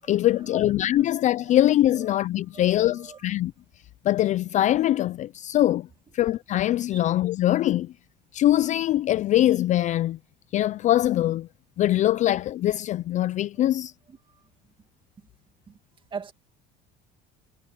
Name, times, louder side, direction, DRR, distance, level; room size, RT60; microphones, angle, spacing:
voice 1, 0.1-3.5 4.0-5.9 6.1-7.9 8.3-10.2 10.5-11.5 11.8-13.9, left 13 dB, 40° left, 0.4 m, -22 dB
voice 2, 2.9-3.2 6.9-7.0 13.6-13.7 14.1-14.4 15.2-15.3 15.7-15.8 16.1-16.3, right 5 dB, 25° right, 2.3 m, -41 dB
cardioid pair, 140°, 20 cm